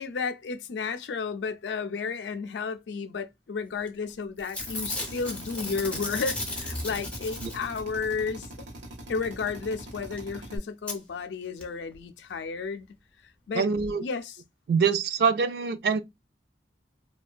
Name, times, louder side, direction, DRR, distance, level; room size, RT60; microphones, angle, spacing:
voice 1, 0.0-8.5 9.1-12.9 13.5-13.6 14.0-14.3, left 5 dB, 75° left, 0.4 m, -32 dB
Packing tape duct tape / Tearing, 3.9-4.1 4.4-8.0 9.9-10.0 10.2-10.3 10.9-11.0 11.6-11.7 11.9-12.0, left 2 dB, 5° left, 0.5 m, -35 dB
Drill, 4.6-10.6, right 1 dB, 90° right, 0.9 m, -43 dB
voice 2, 13.5-14.0 14.7-16.0, right 5 dB, 55° right, 0.3 m, -24 dB
2.5 x 2.2 x 2.2 m
head